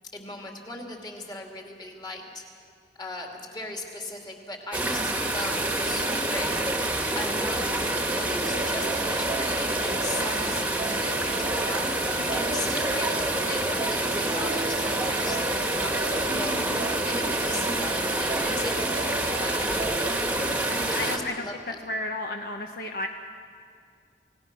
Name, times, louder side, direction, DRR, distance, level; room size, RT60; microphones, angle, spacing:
voice 1, 0.1-2.4 3.0-19.8 20.9-21.8, left 2 dB, 25° left, 1 dB, 2.8 m, -38 dB
sound 1, 4.7-21.2, right 1 dB, 10° right, 1.6 m, -27 dB
sound 2, 8.3-20.2, right 3 dB, 45° right, 1.1 m, -37 dB
voice 2, 16.5-16.9 20.3-23.1, left 2 dB, 55° left, 3 dB, 1.0 m, -34 dB
28.5 x 18.5 x 6.3 m, 2.4 s
head